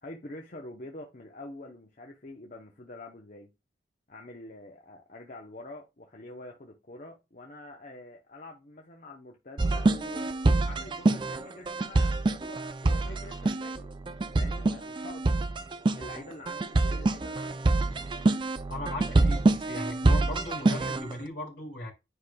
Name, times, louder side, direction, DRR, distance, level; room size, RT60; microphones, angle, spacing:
voice 1, 0.0-3.5 4.1-10.3 10.6-14.0 14.3-15.4 15.9-17.7 19.1-19.3, left 2 dB, 45° left, 0.9 m, -46 dB
sound 1, 9.6-21.1, right 2 dB, 25° right, 0.4 m, -26 dB
voice 2, 18.7-19.4 19.7-21.9, left 1 dB, 70° left, 2.7 m, -37 dB
9.8 x 5.0 x 2.3 m
head